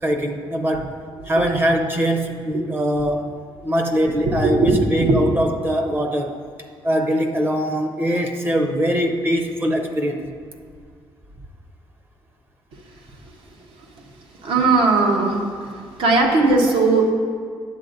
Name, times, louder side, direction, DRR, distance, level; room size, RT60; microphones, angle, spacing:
voice 1, 0.0-1.0 1.2-3.3 3.6-6.3 6.8-10.3, equal, 20° right, 3 dB, 0.6 m, -22 dB
voice 2, 4.2-5.2 13.9-14.0 14.4-17.1, right 3 dB, 75° right, 1 dB, 1.1 m, -19 dB
10.5 x 7.7 x 2.6 m, 2.1 s
cardioid pair, 125°, 9 cm